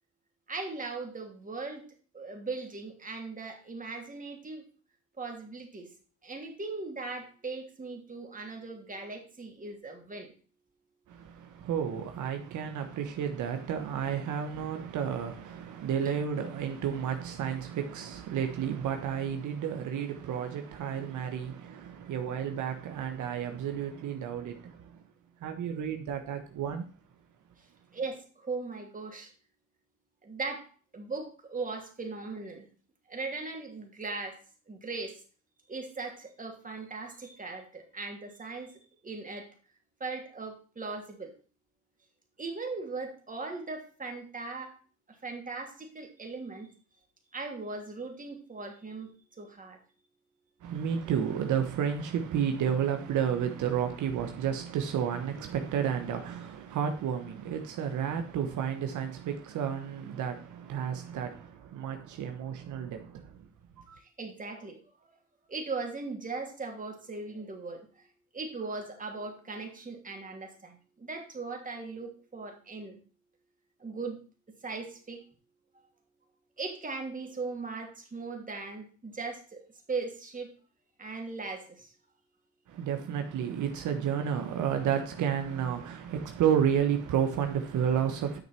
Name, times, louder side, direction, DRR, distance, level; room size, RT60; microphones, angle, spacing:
voice 1, 0.5-1.9 2.1-4.6 5.2-5.9 6.2-10.3 27.9-29.3 30.2-30.7 30.9-32.7 33.1-34.4 34.7-35.2 35.7-38.7 39.0-39.5 40.0-41.3 42.4-44.8 45.2-46.7 47.3-49.1 49.4-49.8 64.0-64.8 65.5-68.1 68.3-73.0 73.8-74.2 74.6-75.2 76.6-79.6 79.9-80.5 81.0-81.9, right 3 dB, 25° right, 2.9 m, -39 dB
voice 2, 11.1-25.0 25.4-26.9 50.6-63.5 63.9-64.0 82.7-88.4, right 8 dB, 80° right, 1.3 m, -31 dB
9.2 x 6.3 x 4.4 m
cardioid pair, 90°, 30 cm